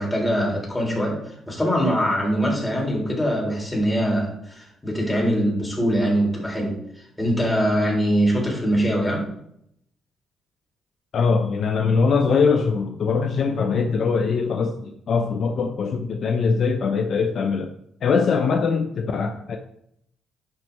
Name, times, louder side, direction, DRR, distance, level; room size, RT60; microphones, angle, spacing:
voice 1, 0.0-9.3, equal, 15° left, -2 dB, 3.8 m, -23 dB
voice 2, 11.1-17.7 18.0-19.6, left 5 dB, 60° left, 6 dB, 0.7 m, -22 dB
11.0 x 6.1 x 3.5 m, 0.73 s
cardioid pair, 90°, 0 cm